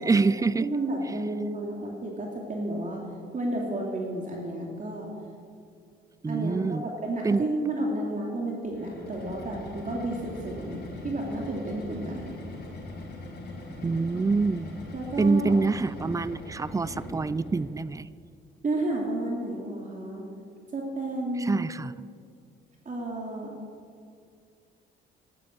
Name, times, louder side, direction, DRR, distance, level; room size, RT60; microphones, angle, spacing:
voice 1, 0.0-0.7 6.2-6.8 7.2-7.4 13.8-14.8 15.2-18.1 21.4-21.9, right 4 dB, 15° right, 18 dB, 0.4 m, -26 dB
voice 2, 0.6-3.0 3.3-5.1 6.3-12.4 14.9-15.6 18.6-20.2 20.7-21.7 22.8-23.6, right 1 dB, 40° right, -1 dB, 2.6 m, -31 dB
sound 1, 8.7-17.8, left 1 dB, 55° left, 4.1 m, -41 dB
13.5 x 11.0 x 7.7 m, 2.2 s
cardioid pair, 90°, 20 cm